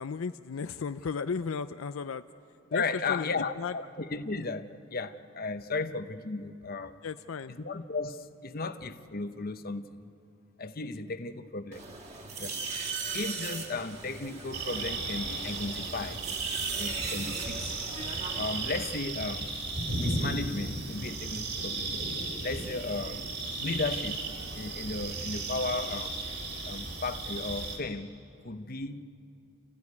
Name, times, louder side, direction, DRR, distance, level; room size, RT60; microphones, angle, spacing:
voice 1, 0.0-2.2 2.7-2.8 3.1-3.3 3.6-3.7 7.0-7.6, left 5 dB, 75° left, 0.5 m, -34 dB
voice 2, 2.7-7.0 7.5-10.1 10.6-11.8 12.4-12.6 13.1-16.2 16.7-17.8 18.4-19.5 19.9-22.0 22.4-23.3 23.6-24.2 24.5-26.1 26.7-28.1 28.4-29.0, left 3 dB, 45° left, 0.9 m, -35 dB
sound 1, 11.7-18.9, right 4 dB, 35° right, 2.5 m, -38 dB
sound 2, 14.5-27.8, right 3 dB, 55° right, 4.2 m, -35 dB
30.0 x 15.0 x 9.7 m
head